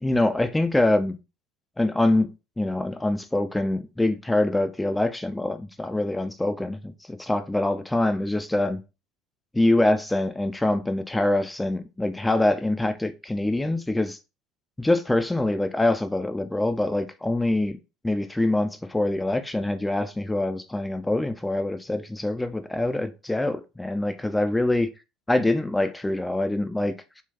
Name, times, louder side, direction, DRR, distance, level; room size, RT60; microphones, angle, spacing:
voice 1, 0.0-1.2 1.8-2.3 2.6-8.8 9.5-14.2 14.8-17.8 18.0-24.9 25.3-26.9, left 2 dB, 10° left, 0.5 m, -24 dB
3.8 x 2.4 x 2.8 m
hypercardioid pair, 65°, 0 cm